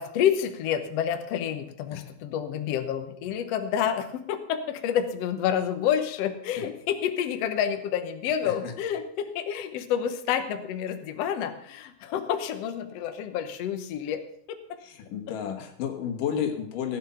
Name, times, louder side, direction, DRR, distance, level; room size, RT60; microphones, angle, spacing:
voice 1, 0.0-14.2 14.5-14.6, left 9 dB, 65° left, 8 dB, 1.8 m, -29 dB
voice 2, 14.8-17.0, left 8 dB, 85° left, 4 dB, 3.1 m, -32 dB
15.5 x 9.3 x 5.7 m, 0.69 s
omnidirectional pair, 3.7 m